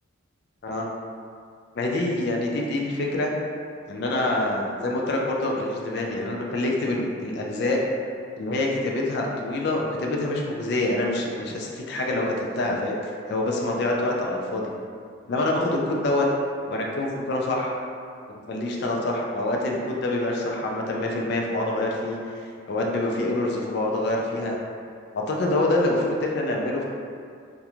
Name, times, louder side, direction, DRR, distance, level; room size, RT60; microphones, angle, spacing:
voice 1, 1.7-3.3 3.9-7.8 8.4-14.7 15.3-16.3 16.7-17.7 18.5-24.6 25.1-26.9, left 2 dB, 50° left, -1 dB, 0.3 m, -26 dB
2.4 x 2.2 x 2.9 m, 2.3 s
head